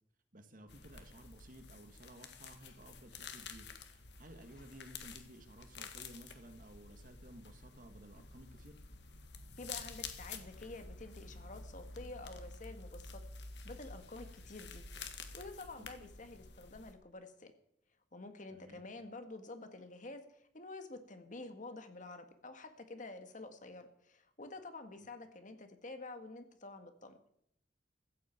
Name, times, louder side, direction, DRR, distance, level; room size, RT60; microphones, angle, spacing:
voice 1, 0.3-8.8 15.8-16.1 18.5-18.8 24.9-25.1, right 1 dB, 50° right, 7 dB, 1.9 m, -56 dB
sound 1, 0.7-16.9, left 4 dB, 70° left, 1.7 m, -50 dB
voice 2, 9.6-13.2 13.6-17.5 18.1-27.2, left 2 dB, 45° left, 8 dB, 1.6 m, -49 dB
16.0 x 14.5 x 4.5 m, 0.72 s
head